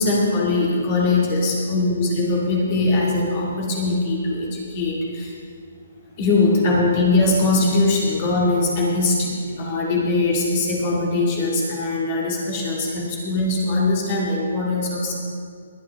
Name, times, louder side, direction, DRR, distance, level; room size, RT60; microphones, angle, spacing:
voice 1, 0.0-5.3 6.2-15.1, left 2 dB, 30° left, -3 dB, 2.1 m, -21 dB
21.0 x 9.9 x 3.5 m, 2.2 s
hypercardioid pair, 165°, 0 cm